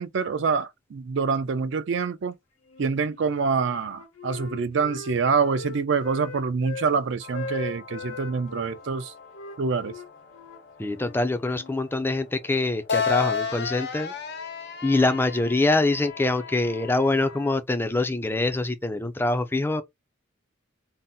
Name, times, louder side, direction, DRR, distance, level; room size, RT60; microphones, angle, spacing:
voice 1, 0.0-2.3 2.8-9.1 9.6-9.9, right 5 dB, 60° right, 0.4 m, -26 dB
Wind instrument woodwind instrument, 2.7-3.5 3.8-6.9 7.3-8.8 9.3-11.8, left 3 dB, 85° left, 0.8 m, -39 dB
sound 1, 7.2-17.6, left 6 dB, 55° left, 0.6 m, -34 dB
voice 2, 10.8-14.1 14.8-19.8, left 2 dB, 10° left, 0.3 m, -24 dB
2.7 x 2.0 x 3.6 m
head